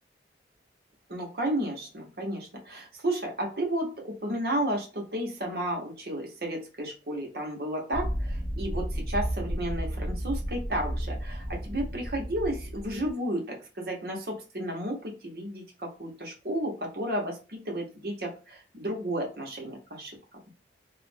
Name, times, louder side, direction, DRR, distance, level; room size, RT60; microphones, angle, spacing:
voice 1, 1.1-20.1, right 1 dB, 60° right, 0 dB, 0.8 m, -32 dB
sound 1, 7.9-13.1, equal, 20° right, 0.4 m, -33 dB
2.4 x 2.0 x 3.3 m, 0.33 s
head